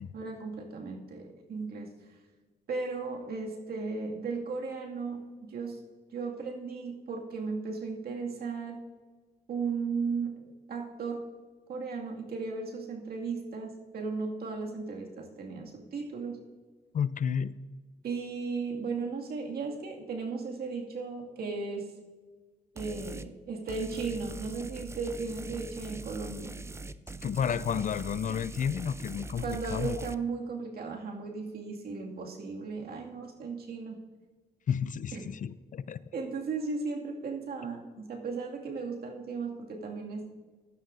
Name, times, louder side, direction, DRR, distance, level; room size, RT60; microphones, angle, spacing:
voice 1, 0.1-1.9 2.7-5.8 6.1-8.8 9.5-11.3 11.7-16.4 18.0-21.9 22.8-26.6 29.4-34.0 35.1-35.3 36.1-40.3, right 4 dB, 65° right, 0 dB, 2.2 m, -36 dB
voice 2, 16.9-17.5 27.2-30.0 34.7-36.0, left 7 dB, 50° left, 16 dB, 0.5 m, -31 dB
sound 1, 22.8-23.3 23.7-30.2, right 2 dB, 15° right, 0.6 m, -42 dB
16.5 x 11.5 x 2.6 m, 1.3 s
supercardioid pair, 60°, 17 cm